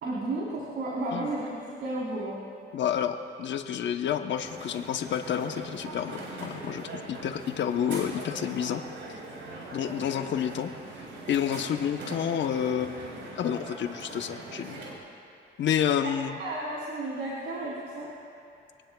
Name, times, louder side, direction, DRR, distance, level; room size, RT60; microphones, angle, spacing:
voice 1, 0.0-2.5 16.0-16.1 16.4-18.1, right 2 dB, 65° right, -6 dB, 3.9 m, -33 dB
voice 2, 2.7-8.8 9.7-10.7 11.3-14.8 15.6-16.4, left 9 dB, 65° left, 6 dB, 1.0 m, -29 dB
Crowd, 4.3-14.9, right 2 dB, 80° right, 4.3 m, -41 dB
26.0 x 19.0 x 2.4 m, 2.5 s
cardioid pair, 90°, 20 cm